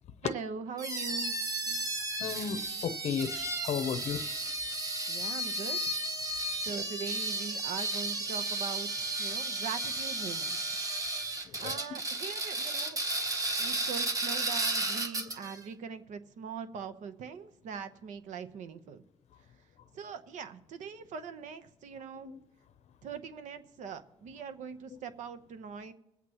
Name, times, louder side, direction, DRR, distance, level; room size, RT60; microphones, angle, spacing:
voice 1, 0.2-1.3 5.1-5.8 6.6-10.8 11.6-13.0 13.6-19.0 19.9-22.3 23.0-25.9, right 6 dB, 75° right, 0.9 m, -41 dB
sound 1, 0.8-15.6, right 2 dB, 30° right, 1.2 m, -33 dB
voice 2, 2.2-4.2 11.6-11.8 22.2-22.4, left 7 dB, 60° left, 0.7 m, -34 dB
22.0 x 8.4 x 3.0 m
cardioid pair, 110°, 13 cm